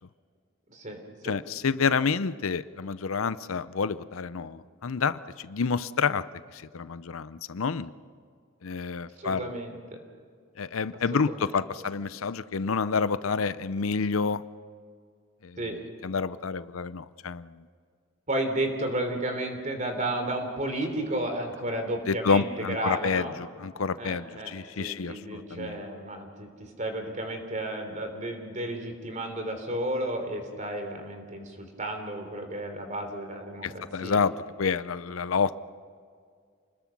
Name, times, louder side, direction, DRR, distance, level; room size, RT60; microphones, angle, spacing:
voice 1, 0.7-1.4 9.2-9.8 11.1-11.5 15.6-15.8 18.3-23.4 24.0-34.2, right 1 dB, 40° right, 5 dB, 3.5 m, -33 dB
voice 2, 1.2-6.2 6.5-7.9 8.6-9.5 10.6-14.4 15.4-15.6 16.0-17.6 22.1-25.8 33.6-34.3 34.6-35.6, left 5 dB, 90° left, 16 dB, 0.6 m, -28 dB
29.0 x 20.5 x 6.0 m, 2.1 s
head